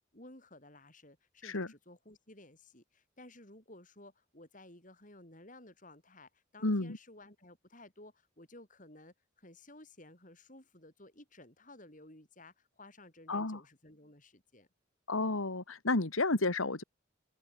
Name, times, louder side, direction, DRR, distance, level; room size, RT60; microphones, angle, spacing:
voice 1, 0.1-14.7, left 1 dB, 40° left, 6.3 m, -55 dB
voice 2, 6.6-7.0 13.3-13.6 15.1-16.8, left 2 dB, 90° left, 2.0 m, -31 dB
head